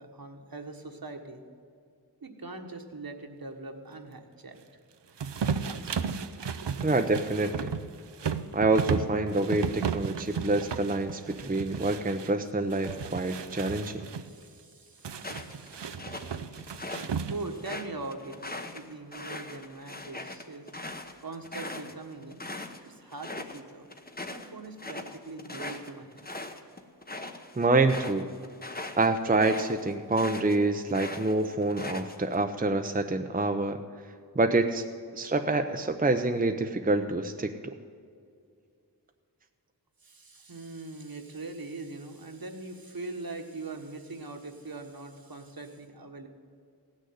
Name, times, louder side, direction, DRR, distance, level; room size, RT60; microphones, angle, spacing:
voice 1, 0.0-1.4 2.2-4.6 13.2-13.4 14.2-15.9 16.7-20.7 21.2-22.4 22.8-23.9 24.3-26.3 40.0-46.3, right 2 dB, 55° right, 4 dB, 1.5 m, -42 dB
sound 1, 5.2-12.3 12.7-14.3 15.0-17.6, right 6 dB, 85° right, 0.7 m, -34 dB
voice 2, 6.8-7.7 8.5-14.0 27.6-28.3 29.0-33.8 34.3-34.8 35.1-37.5, right 2 dB, 20° right, 5 dB, 0.7 m, -26 dB
sound 2, 15.2-17.1 17.5-22.8 23.1-23.6 23.9-30.6 30.9-32.4, left 2 dB, 20° left, 1.0 m, -40 dB
16.0 x 6.5 x 9.3 m, 2.3 s
wide cardioid pair, 60°, 41 cm